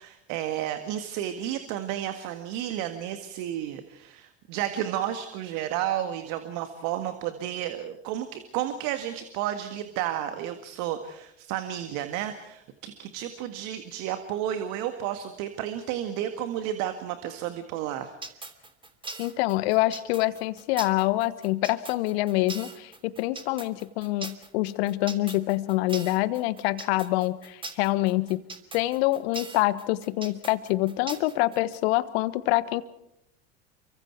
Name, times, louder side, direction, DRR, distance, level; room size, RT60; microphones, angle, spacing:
voice 1, 0.0-18.1, right 11 dB, 60° right, 8 dB, 1.8 m, -32 dB
sound 1, 18.2-31.8, right 3 dB, 15° right, 2.8 m, -40 dB
voice 2, 19.2-28.4 28.7-32.8, left 18 dB, 65° left, 16 dB, 1.3 m, -26 dB
29.5 x 24.0 x 4.6 m, 0.83 s
hypercardioid pair, 70°, 34 cm